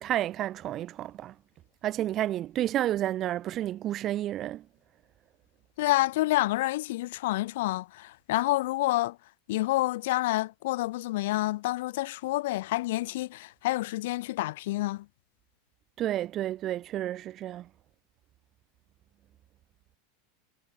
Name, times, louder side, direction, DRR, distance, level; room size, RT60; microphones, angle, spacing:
voice 1, 0.0-1.3 1.8-4.6 16.0-17.7, right 13 dB, 25° right, 0.4 m, -30 dB
voice 2, 5.8-9.2 9.5-15.1, left 18 dB, 65° left, 0.4 m, -28 dB
supercardioid pair, 170°, 0 cm